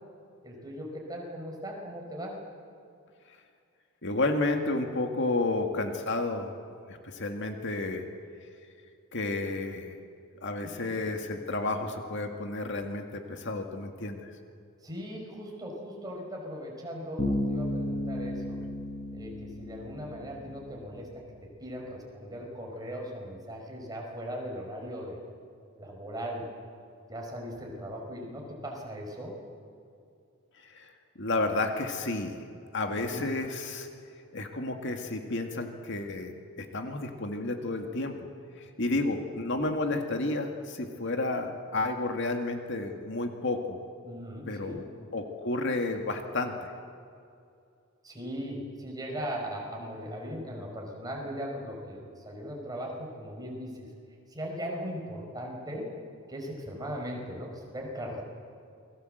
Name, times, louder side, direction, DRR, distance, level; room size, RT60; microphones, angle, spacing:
voice 1, 0.4-2.4 10.6-11.1 14.8-18.6 19.1-21.1 21.6-25.2 25.8-26.4 27.1-29.4 32.9-33.2 38.8-38.9 44.0-44.8 48.0-53.9 54.3-55.9 56.3-58.2, equal, 15° right, 0 dB, 5.3 m, -38 dB
voice 2, 4.0-6.6 6.9-8.1 9.1-10.0 10.4-14.3 30.6-30.9 31.2-32.4 32.7-33.9 34.3-36.3 36.6-38.1 38.6-43.8 44.5-44.9 45.1-46.7, left 2 dB, 55° left, 4 dB, 2.1 m, -31 dB
Bass guitar, 17.2-20.8, left 1 dB, 30° left, 5.5 m, -33 dB
28.5 x 21.5 x 8.0 m, 2.4 s
head